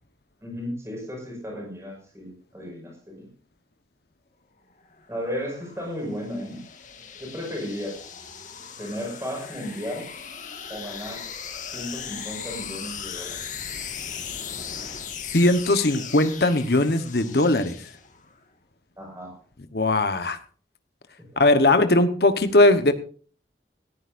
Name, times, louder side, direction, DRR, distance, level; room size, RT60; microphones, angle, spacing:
voice 1, 0.4-3.3 5.1-6.6 7.2-8.1 8.8-10.1 10.7-11.3 11.6-13.4 19.0-19.4 21.3-21.4, equal, 15° right, 1 dB, 5.6 m, -34 dB
sound 1, 4.9-18.3, left 7 dB, 45° left, 1.8 m, -38 dB
voice 2, 15.3-17.8 19.7-20.4 21.4-22.9, left 2 dB, 65° left, 10 dB, 1.1 m, -19 dB
18.5 x 14.0 x 2.6 m, 0.43 s
head